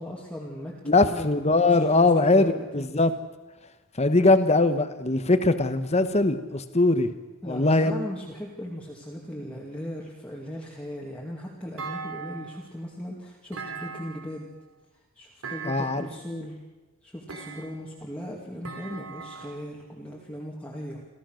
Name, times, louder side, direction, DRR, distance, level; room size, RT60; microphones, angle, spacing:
voice 1, 0.0-0.7 1.0-2.6 7.4-14.5 15.2-16.6 17.0-21.0, equal, 5° left, -4 dB, 2.5 m, -38 dB
voice 2, 0.8-3.1 4.0-7.1 7.4-7.9 15.6-16.1, left 2 dB, 30° left, 10 dB, 1.2 m, -21 dB
Thump thud, 11.8-12.7 13.5-14.4 15.4-16.2 17.3-18.0 18.6-19.7, right 5 dB, 70° right, 3.1 m, -39 dB
28.5 x 14.5 x 6.5 m, 1.2 s
head